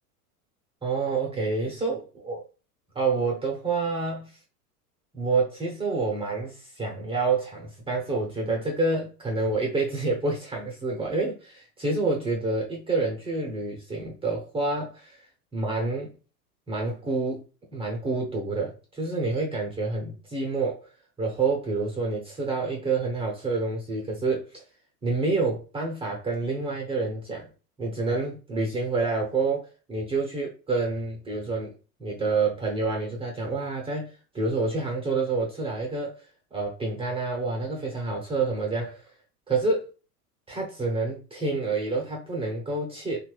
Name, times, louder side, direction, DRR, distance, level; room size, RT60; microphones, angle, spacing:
voice 1, 0.8-2.4 2.9-4.3 5.1-15.2 15.5-16.1 16.7-17.4 17.7-20.8 21.2-24.6 25.0-27.5 27.8-31.7 32.0-36.1 36.5-39.0 39.5-39.9 40.5-43.2, right 3 dB, 10° right, 0.7 m, -28 dB
3.0 x 2.4 x 3.1 m
figure-of-eight pair, 95°, 47 cm